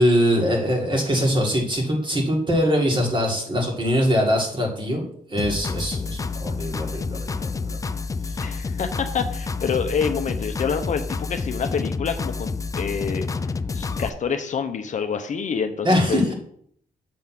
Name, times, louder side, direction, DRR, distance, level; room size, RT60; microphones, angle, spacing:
voice 1, 0.0-7.8 15.8-16.3, equal, 30° right, 0 dB, 2.0 m, -22 dB
sound 1, 5.4-14.1, left 4 dB, 20° left, 0.3 m, -29 dB
voice 2, 8.4-13.3 13.7-16.3, left 6 dB, 50° left, 7 dB, 0.7 m, -27 dB
7.6 x 3.7 x 5.9 m, 0.63 s
wide cardioid pair, 130°, 16 cm